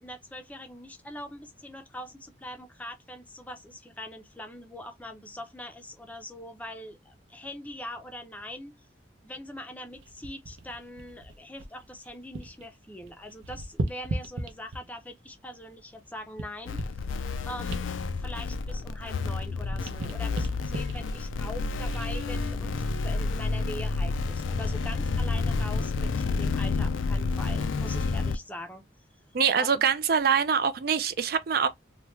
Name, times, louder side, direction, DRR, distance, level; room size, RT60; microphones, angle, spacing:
voice 1, 0.0-8.8 9.2-16.8 17.1-17.2 17.5-28.8 29.6-29.9, left 1 dB, 10° left, 0.5 m, -42 dB
sound 1, 9.9-12.7 12.9-15.1 15.6-19.2 19.5-22.3 22.8-23.0, right 2 dB, 90° right, 0.7 m, -38 dB
sound 2, 16.7-28.4, left 4 dB, 90° left, 0.4 m, -30 dB
voice 2, 29.3-31.7, right 6 dB, 50° right, 0.4 m, -24 dB
3.1 x 2.2 x 3.1 m
head